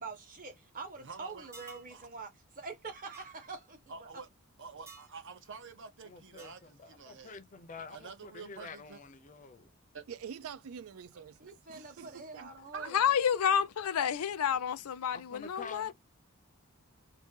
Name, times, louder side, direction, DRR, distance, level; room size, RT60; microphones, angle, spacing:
voice 1, 0.0-4.2 11.4-13.1, right 4 dB, 40° right, 1.1 m, -45 dB
voice 2, 1.0-1.5 1.9-2.1 3.9-4.3 4.6-7.4 7.9-9.0 9.9-10.0 11.1-11.2 12.7-12.9, right 5 dB, 60° right, 0.8 m, -47 dB
sound 1, 1.5-1.9 3.1-3.3 4.9-5.1 6.4-6.7, right 4 dB, 10° right, 0.8 m, -52 dB
voice 3, 6.0-9.7 15.1-15.9, left 5 dB, 35° left, 0.5 m, -48 dB
voice 4, 10.1-12.5, right 7 dB, 75° right, 0.4 m, -46 dB
voice 5, 12.9-15.9, left 8 dB, 90° left, 0.4 m, -29 dB
2.8 x 2.6 x 3.6 m
head